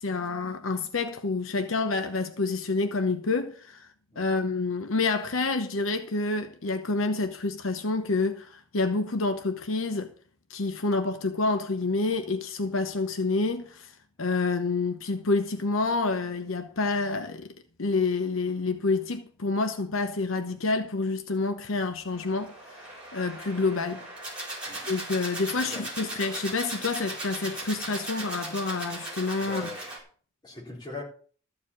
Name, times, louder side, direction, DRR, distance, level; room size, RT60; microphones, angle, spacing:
voice 1, 0.0-3.9 4.2-10.1 10.5-17.5 17.8-24.1 24.9-29.7, left 3 dB, 70° left, 0.9 m, -28 dB
sound 1, 22.1-30.0, right 1 dB, 5° right, 4.2 m, -38 dB
voice 2, 25.5-25.9 29.4-29.9 30.4-31.0, left 3 dB, 20° left, 4.1 m, -40 dB
14.0 x 4.9 x 8.6 m
head